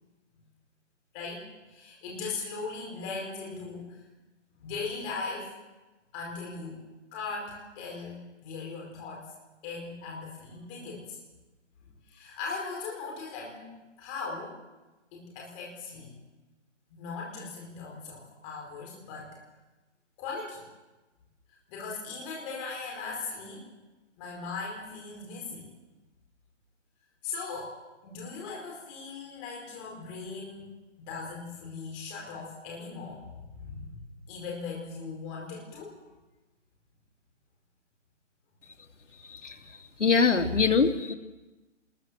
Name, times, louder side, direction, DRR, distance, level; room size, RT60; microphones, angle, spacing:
voice 1, 1.1-4.0 4.6-5.5 6.1-6.8 7.1-9.3 9.6-11.2 11.8-13.7 14.0-14.6 15.1-16.1 16.9-19.4 20.2-20.6 21.7-23.6 24.2-25.7 27.2-30.7 31.1-36.0, left 4 dB, 10° left, -2 dB, 5.0 m, -39 dB
voice 2, 40.0-41.1, left 5 dB, 75° left, 5 dB, 2.5 m, -23 dB
25.0 x 21.5 x 7.7 m, 1.1 s
hypercardioid pair, 170°, 37 cm